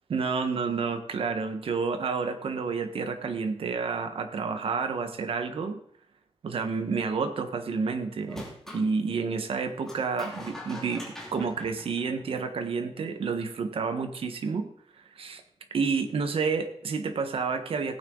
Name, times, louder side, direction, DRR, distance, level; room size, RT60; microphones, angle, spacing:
voice 1, 0.1-5.8 6.4-14.7 15.1-15.4 15.7-18.0, right 5 dB, 60° right, 7 dB, 1.4 m, -30 dB
sound 1, 8.3-8.9 9.8-12.6, left 1 dB, 5° left, 2.7 m, -43 dB
16.5 x 9.3 x 3.9 m, 0.67 s
wide cardioid pair, 160°, 11 cm